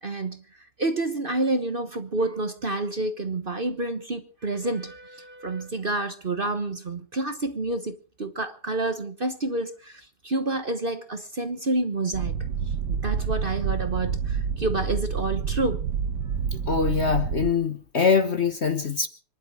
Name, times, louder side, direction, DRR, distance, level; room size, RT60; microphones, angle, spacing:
voice 1, 0.0-0.4 0.8-12.4 12.9-15.8, right 2 dB, 35° right, 1.2 m, -29 dB
sound 1, 12.1-17.5, right 6 dB, 70° right, 1.7 m, -28 dB
voice 2, 16.7-19.1, left 5 dB, 45° left, 1.2 m, -23 dB
25.5 x 11.5 x 4.9 m
omnidirectional pair, 1.9 m